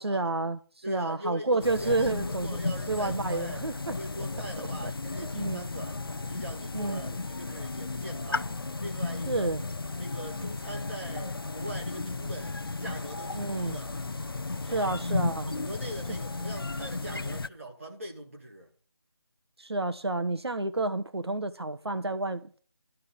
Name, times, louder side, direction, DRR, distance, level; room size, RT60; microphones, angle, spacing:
voice 1, 0.0-2.6 2.9-3.9 4.6-4.9 5.3-5.7 6.7-7.0 9.3-9.6 13.3-13.8 14.6-15.5 19.6-22.6, right 2 dB, 65° right, 1.1 m, -30 dB
voice 2, 0.8-6.0 6.3-9.5 10.0-13.9 14.7-14.9 15.5-18.7, right 1 dB, 30° right, 2.2 m, -42 dB
sound 1, 1.6-17.5, left 3 dB, 55° left, 0.6 m, -34 dB
13.5 x 5.5 x 8.4 m
figure-of-eight pair, 180°, 14 cm